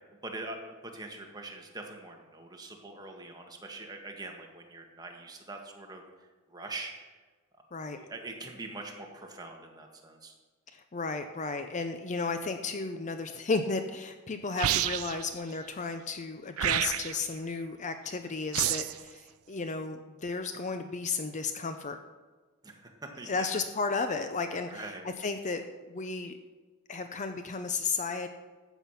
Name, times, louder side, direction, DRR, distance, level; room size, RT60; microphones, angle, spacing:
voice 1, 0.2-6.0 6.5-7.1 7.9-10.3 18.2-18.3 22.6-23.5 24.7-25.1, right 2 dB, 20° right, 2 dB, 1.7 m, -43 dB
voice 2, 10.7-22.0 23.2-26.4 26.9-28.3, left 4 dB, 35° left, 8 dB, 0.6 m, -34 dB
sound 1, 14.6-15.3 16.6-17.3 18.5-19.0, right 11 dB, 70° right, 0.5 m, -29 dB
13.5 x 8.2 x 5.8 m, 1.3 s
head